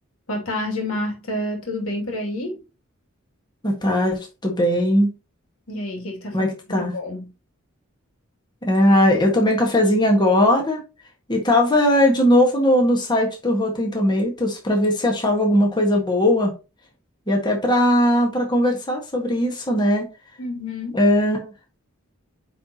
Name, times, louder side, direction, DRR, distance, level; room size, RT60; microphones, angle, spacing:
voice 1, 0.3-2.6 5.7-6.5 6.8-7.3 20.4-21.0, left 1 dB, 85° left, 2.6 m, -28 dB
voice 2, 3.6-5.1 6.3-6.9 8.6-10.8 11.3-16.5 17.3-20.1 20.9-21.5, left 1 dB, 20° left, 1.6 m, -19 dB
9.1 x 4.2 x 2.9 m
head